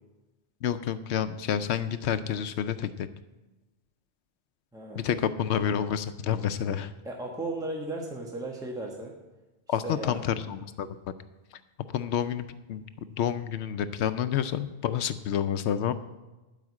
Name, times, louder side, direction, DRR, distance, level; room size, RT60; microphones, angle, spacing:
voice 1, 0.6-3.1 4.9-6.9 9.7-11.0 11.9-12.8 13.1-15.9, left 9 dB, 85° left, 12 dB, 0.9 m, -29 dB
voice 2, 4.7-5.1 7.0-9.1 9.8-10.2, right 2 dB, 5° right, -1 dB, 1.3 m, -35 dB
12.5 x 5.0 x 8.3 m, 1.1 s
omnidirectional pair, 1.1 m